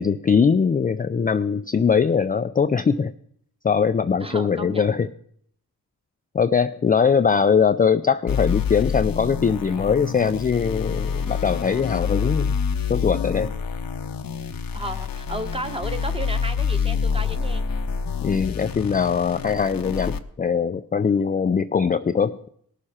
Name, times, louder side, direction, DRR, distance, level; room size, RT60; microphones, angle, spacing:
voice 1, 0.0-3.1 3.6-5.1 6.3-12.6 12.9-13.5 18.2-22.5, left 6 dB, 25° left, 10 dB, 0.4 m, -21 dB
voice 2, 4.2-4.9 14.7-17.6, right 1 dB, 15° right, 7 dB, 1.1 m, -33 dB
sound 1, 8.3-20.2, left 6 dB, 65° left, 0.8 m, -27 dB
18.0 x 6.6 x 4.3 m, 0.66 s
cardioid pair, 50°, 36 cm